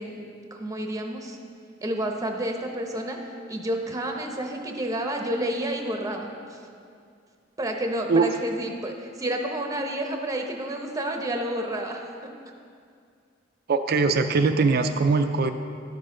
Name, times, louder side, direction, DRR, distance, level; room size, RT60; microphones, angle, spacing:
voice 1, 0.0-1.4 1.8-3.2 3.5-6.6 7.6-12.3, right 1 dB, 20° right, 3 dB, 0.8 m, -30 dB
voice 2, 13.7-15.5, right 4 dB, 55° right, 7 dB, 0.4 m, -21 dB
12.0 x 6.5 x 3.7 m, 2.3 s
head